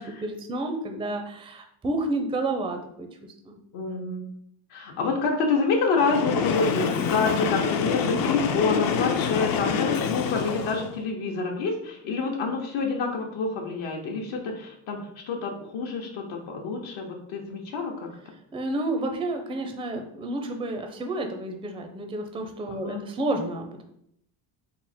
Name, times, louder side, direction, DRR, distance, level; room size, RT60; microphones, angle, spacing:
voice 1, 0.0-3.1 3.4-3.6 18.5-23.8, right 2 dB, 10° right, 5 dB, 0.4 m, -30 dB
voice 2, 3.7-4.3 4.7-18.1 22.7-23.0, left 4 dB, 70° left, 1 dB, 0.8 m, -28 dB
Train, 6.0-11.0, left 6 dB, 45° left, 0.5 m, -26 dB
3.7 x 2.0 x 4.2 m, 0.71 s
cardioid pair, 95°, 49 cm